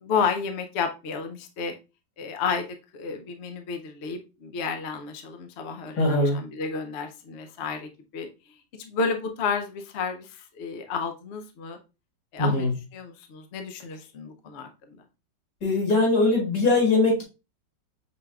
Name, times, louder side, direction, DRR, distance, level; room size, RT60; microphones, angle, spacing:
voice 1, 0.0-1.7 2.2-8.3 8.7-11.8 12.3-12.7 12.9-15.0, left 5 dB, 75° left, 6 dB, 0.6 m, -31 dB
voice 2, 6.0-6.4 12.4-12.7 15.6-17.2, left 2 dB, 55° left, -2 dB, 2.2 m, -21 dB
6.0 x 3.3 x 2.3 m, 0.29 s
omnidirectional pair, 2.0 m